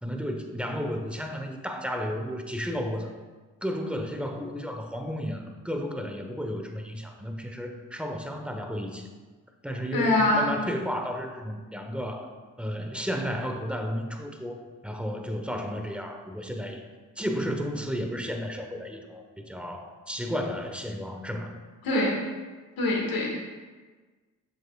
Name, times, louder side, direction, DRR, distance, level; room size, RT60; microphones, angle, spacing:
voice 1, 0.0-3.1 3.6-9.1 9.6-12.3 12.6-16.8 17.2-21.5, equal, 5° right, 4 dB, 1.1 m, -33 dB
voice 2, 9.9-10.5 21.8-22.2 22.8-23.3, left 2 dB, 70° left, -1 dB, 1.9 m, -24 dB
8.7 x 6.5 x 2.4 m, 1.4 s
supercardioid pair, 45°, 36 cm